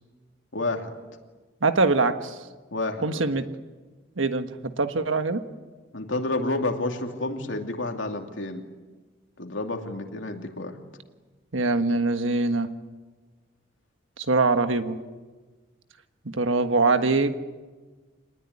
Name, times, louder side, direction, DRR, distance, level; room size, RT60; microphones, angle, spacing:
voice 1, 0.5-0.9 2.7-3.3 5.9-8.6 9.4-10.8, left 2 dB, 75° left, 3 dB, 2.8 m, -30 dB
voice 2, 1.6-2.3 3.0-3.4 4.2-5.4 11.5-12.7 14.2-15.0 16.2-17.3, right 3 dB, 90° right, 8 dB, 1.5 m, -23 dB
26.5 x 20.0 x 9.7 m, 1.3 s
head